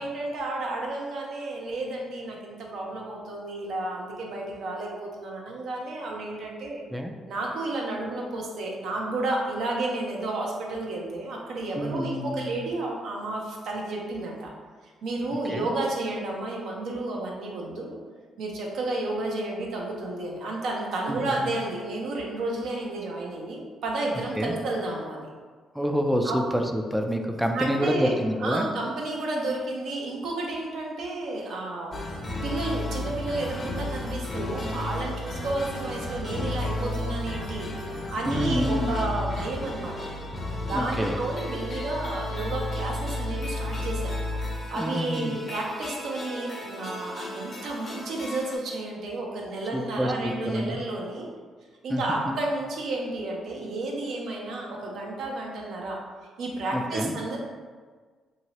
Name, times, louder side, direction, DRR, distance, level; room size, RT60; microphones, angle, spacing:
voice 1, 0.0-6.8 7.3-14.5 15.0-18.0 18.4-25.3 26.2-26.4 27.5-31.9 32.4-37.7 38.1-40.1 40.6-44.1 44.7-51.3 51.8-56.0 56.4-57.4, right 2 dB, 70° right, -1 dB, 0.6 m, -31 dB
voice 2, 11.8-12.5 15.5-15.7 21.1-21.5 24.4-24.5 25.7-28.7 38.3-38.9 40.7-41.2 44.8-45.4 49.7-50.8 51.9-52.4 56.7-57.1, equal, 5° right, 4 dB, 0.3 m, -28 dB
sound 1, 31.9-48.6, left 1 dB, 40° left, 0.6 m, -33 dB
2.8 x 2.7 x 2.9 m, 1.5 s
cardioid pair, 90°, 0 cm